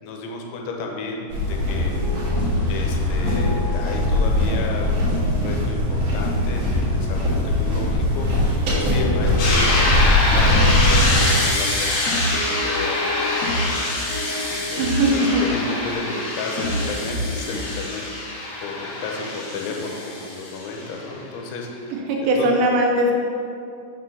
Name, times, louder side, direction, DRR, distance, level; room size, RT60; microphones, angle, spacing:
voice 1, 0.0-1.9 2.7-11.9 12.3-18.0 18.6-22.0 22.4-22.5, left 3 dB, 85° left, 1 dB, 3.1 m, -33 dB
sound 1, 1.3-11.2, left 1 dB, 55° right, 2.6 m, -21 dB
sound 2, 1.8-2.7 3.3-4.5 4.8-6.5 6.9-7.9 8.2-9.8 10.2-15.2 15.9-17.4, left 1 dB, 50° left, 1.9 m, -28 dB
sound 3, 9.4-21.0, left 2 dB, 65° left, 3.1 m, -25 dB
voice 2, 14.8-15.5 22.1-23.1, right 1 dB, 80° right, -1 dB, 2.9 m, -19 dB
7.1 x 4.4 x 5.9 m, 2.5 s
omnidirectional pair, 5.3 m